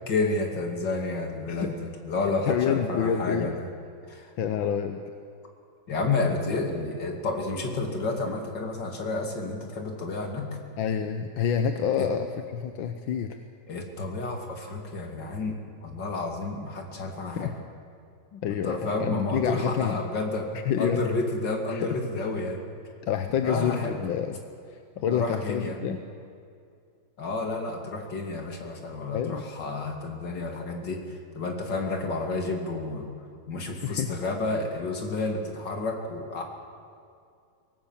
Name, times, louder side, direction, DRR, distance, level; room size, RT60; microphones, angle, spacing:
voice 1, 0.1-3.7 4.1-4.3 5.9-10.5 12.0-12.1 13.7-17.5 18.6-22.6 23.4-24.0 25.1-25.8 27.2-33.1 33.5-36.4, left 3 dB, 65° left, 3 dB, 3.1 m, -30 dB
voice 2, 1.5-1.8 2.2-3.5 4.4-5.0 6.6-6.7 10.8-12.3 12.5-13.4 17.3-17.5 18.3-20.0 20.5-21.0 21.7-22.3 23.0-24.4 24.7-26.0 29.1-29.4 33.7-34.1, left 8 dB, 85° left, 7 dB, 1.7 m, -28 dB
24.0 x 18.0 x 7.3 m, 2.4 s
omnidirectional pair, 2.1 m